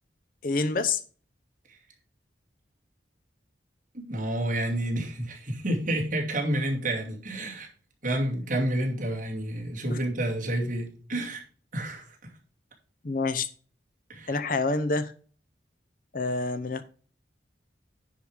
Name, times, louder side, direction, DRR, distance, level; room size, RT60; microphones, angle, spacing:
voice 1, 0.4-1.0 9.9-10.0 13.0-13.5 14.3-15.1 16.1-16.8, left 3 dB, 45° left, 11 dB, 0.6 m, -27 dB
voice 2, 3.9-7.7 8.0-11.4 11.7-12.3 14.1-14.4, right 1 dB, 45° right, 0 dB, 2.4 m, -29 dB
10.0 x 4.9 x 4.9 m, 0.41 s
head